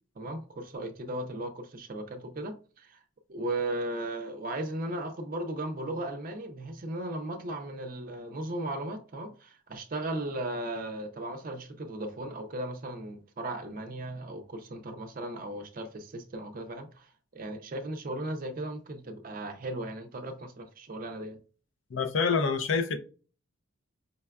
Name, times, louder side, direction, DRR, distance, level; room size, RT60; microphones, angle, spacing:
voice 1, 0.2-3.0 3.3-21.4, right 1 dB, 40° right, 0.4 m, -36 dB
voice 2, 21.9-23.0, left 5 dB, 65° left, 0.4 m, -26 dB
5.2 x 2.2 x 2.2 m
head